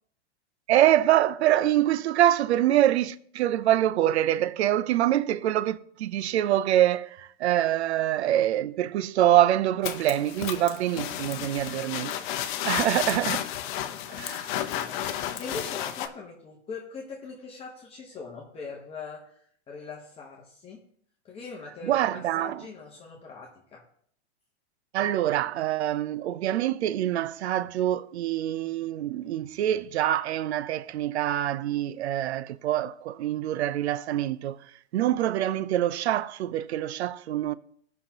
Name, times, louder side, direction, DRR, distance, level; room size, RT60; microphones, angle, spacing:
voice 1, 0.7-12.1 12.4-13.5 14.2-14.4 21.8-22.6 24.9-34.6 34.9-37.5, right 12 dB, 75° right, 0.6 m, -25 dB
sound 1, 9.8-16.1, left 11 dB, 45° left, 0.8 m, -32 dB
voice 2, 13.8-20.9 21.2-23.9, left 4 dB, 15° left, 1.1 m, -42 dB
15.0 x 5.8 x 2.9 m
hypercardioid pair, 140°, 33 cm